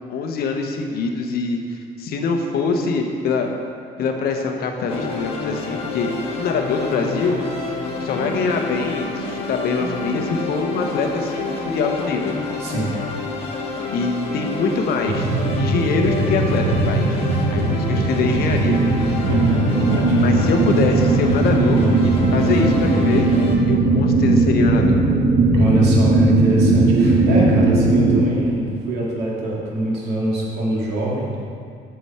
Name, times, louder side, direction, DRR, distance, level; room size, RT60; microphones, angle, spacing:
voice 1, 0.1-3.5 4.0-7.4 8.0-12.4 13.9-17.2 17.5-18.8 20.2-23.3 23.7-25.0, left 4 dB, 65° left, 3 dB, 0.9 m, -24 dB
sound 1, 4.9-23.6, left 3 dB, 35° left, 1.5 m, -29 dB
voice 2, 12.6-12.9 19.3-20.4 25.5-31.4, right 1 dB, 80° right, -4 dB, 2.1 m, -24 dB
sound 2, 15.1-28.3, right 2 dB, 50° right, 1.0 m, -18 dB
7.9 x 6.9 x 4.3 m, 2.3 s
cardioid pair, 110°, 17 cm